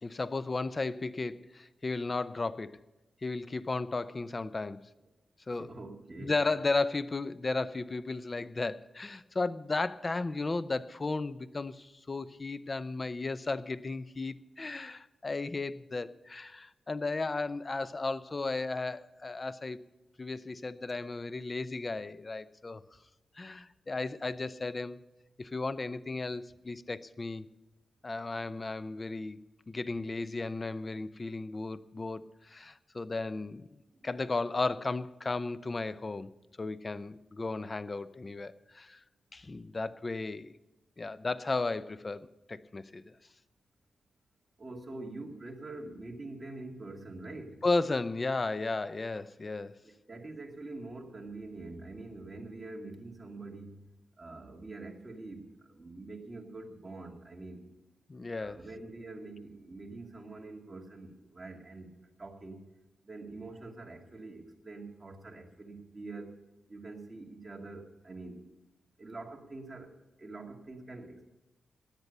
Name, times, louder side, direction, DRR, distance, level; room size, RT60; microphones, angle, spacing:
voice 1, 0.0-2.8 3.2-4.9 5.5-5.7 6.2-19.8 20.2-22.8 23.4-25.0 25.4-27.5 28.0-29.4 29.7-36.3 36.6-39.0 39.3-40.5 41.0-43.1 47.6-49.8 58.1-58.6, left 3 dB, 30° left, 15 dB, 0.6 m, -34 dB
voice 2, 5.5-6.3 33.9-34.1 44.6-47.6 49.8-53.9 54.2-57.7 58.4-62.6 63.0-66.4 66.7-68.4 69.0-71.3, right 2 dB, 25° right, 1 dB, 2.4 m, -45 dB
16.5 x 10.5 x 5.4 m, 1.0 s
cardioid pair, 95°, 0 cm